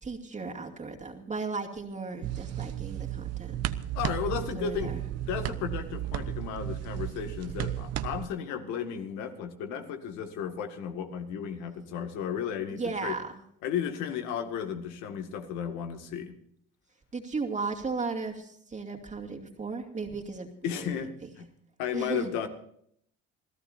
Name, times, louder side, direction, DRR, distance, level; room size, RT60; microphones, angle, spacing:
voice 1, 0.0-3.6 4.4-5.0 12.7-13.4 17.1-21.0 21.9-22.3, right 4 dB, 25° right, 2 dB, 2.5 m, -36 dB
sound 1, 2.2-8.3, right 12 dB, 60° right, 1.0 m, -34 dB
voice 2, 3.9-4.9 5.3-13.1 13.6-16.4 20.6-21.5 21.8-22.5, left 8 dB, 80° left, 6 dB, 2.1 m, -34 dB
28.0 x 15.0 x 2.7 m, 0.68 s
cardioid pair, 105°, 29 cm